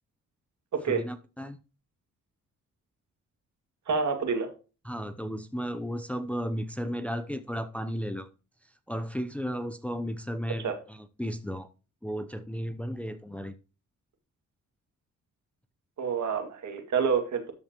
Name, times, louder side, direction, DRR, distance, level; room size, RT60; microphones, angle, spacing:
voice 1, 0.9-1.6 4.8-8.3 8.9-11.7 12.0-13.5, equal, 5° left, 0.7 m, -34 dB
voice 2, 3.9-4.5 10.6-10.7 16.0-17.5, right 5 dB, 65° right, 2.4 m, -28 dB
13.0 x 5.7 x 3.0 m
cardioid pair, 100°, 31 cm